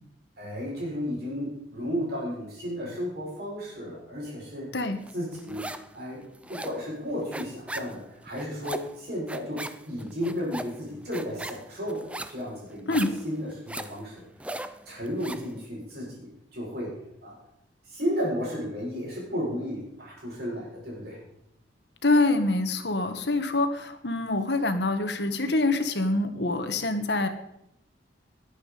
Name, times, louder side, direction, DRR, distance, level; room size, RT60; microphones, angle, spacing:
voice 1, 0.4-4.7 5.1-5.7 5.9-14.2 14.9-16.9 17.2-17.4 17.8-21.2, equal, 60° right, -4 dB, 6.9 m, -33 dB
sound 1, 5.1-6.0 6.2-15.5, right 1 dB, 5° right, 0.6 m, -39 dB
voice 2, 22.0-27.3, left 2 dB, 65° left, 7 dB, 1.7 m, -25 dB
21.0 x 8.8 x 5.3 m, 0.81 s
head